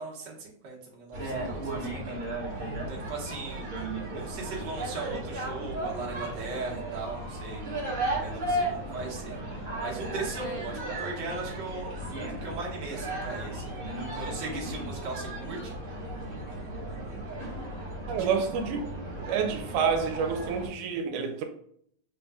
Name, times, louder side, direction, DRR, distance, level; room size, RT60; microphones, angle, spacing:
voice 1, 0.0-2.2 2.6-3.7 4.1-7.6 8.1-13.6 14.0-15.7 18.2-18.4, right 3 dB, 45° right, 1.5 m, -39 dB
sound 1, 1.1-20.7, right 1 dB, 20° right, 1.7 m, -35 dB
voice 2, 18.1-18.9 19.3-21.4, right 6 dB, 85° right, 2.1 m, -28 dB
5.6 x 4.0 x 2.3 m
omnidirectional pair, 3.5 m